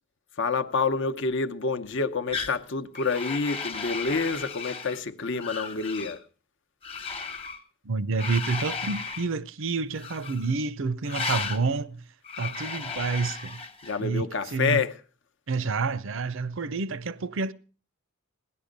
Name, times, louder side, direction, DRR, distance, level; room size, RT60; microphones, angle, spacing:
voice 1, 0.3-6.2 13.8-15.0, left 4 dB, 60° left, 0.8 m, -28 dB
sound 1, 2.3-2.6 2.9-5.0 5.4-6.2 6.8-7.6 8.2-9.3 9.9-10.5 11.0-11.6 12.2-14.0, left 5 dB, 30° left, 1.1 m, -35 dB
voice 2, 7.8-12.0 12.4-13.6 14.0-14.8 15.5-17.5, right 4 dB, 65° right, 0.6 m, -29 dB
17.5 x 11.0 x 5.2 m
head